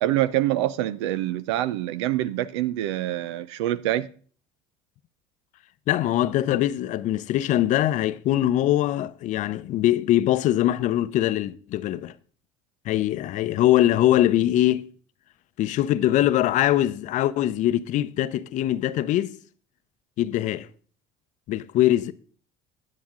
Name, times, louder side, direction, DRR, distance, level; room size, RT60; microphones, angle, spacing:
voice 1, 0.0-4.1, right 14 dB, 85° right, 0.6 m, -25 dB
voice 2, 5.9-12.1 12.9-14.9 15.6-19.4 20.2-20.7 21.5-22.1, left 13 dB, 60° left, 0.6 m, -22 dB
10.5 x 9.6 x 3.7 m
hypercardioid pair, 70°, 14 cm